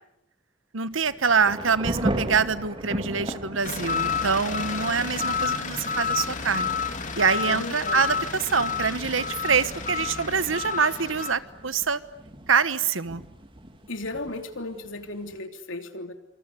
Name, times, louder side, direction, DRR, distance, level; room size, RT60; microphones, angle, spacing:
voice 1, 0.7-6.7 7.2-12.0 12.5-13.2, right 5 dB, 80° right, 14 dB, 1.3 m, -25 dB
Thunder / Rain, 0.9-15.4, right 1 dB, 25° right, 2.4 m, -37 dB
sound 1, 3.6-11.3, left 5 dB, 40° left, 2.8 m, -30 dB
voice 2, 7.4-8.0 13.9-16.1, left 2 dB, 75° left, 6 dB, 3.3 m, -35 dB
27.0 x 26.5 x 8.3 m, 0.79 s
head